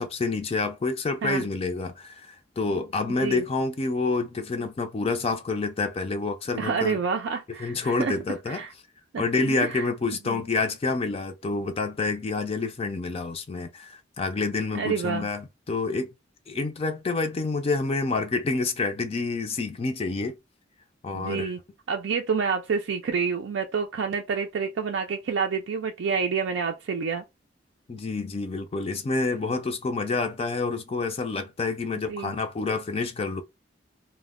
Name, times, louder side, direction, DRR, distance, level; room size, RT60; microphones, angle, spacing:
voice 1, 0.0-7.0 7.6-8.6 9.2-16.1 16.5-20.4 21.0-21.5 27.9-33.4, left 3 dB, 30° left, 0.4 m, -28 dB
voice 2, 6.6-8.2 8.5-8.7 9.1-9.8 10.3-10.4 14.7-15.3 21.1-21.6 21.9-27.2 32.1-32.3, right 5 dB, 75° right, 0.4 m, -28 dB
2.1 x 2.1 x 3.5 m
head